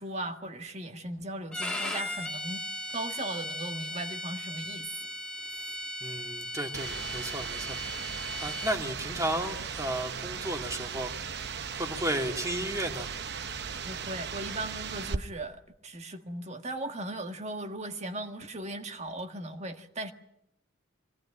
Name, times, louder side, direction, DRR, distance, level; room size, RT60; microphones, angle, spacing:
voice 1, 0.0-2.6 2.9-4.9 13.8-20.1, right 1 dB, 35° right, 6 dB, 1.6 m, -38 dB
Bowed string instrument, 1.5-8.8, left 1 dB, 5° left, 2.2 m, -37 dB
voice 2, 6.0-7.8 8.4-11.4 11.7-13.1, right 1 dB, 15° right, 4 dB, 2.2 m, -34 dB
sound 1, 6.7-15.2, right 6 dB, 55° right, 0.9 m, -37 dB
24.0 x 18.0 x 8.8 m, 0.81 s
head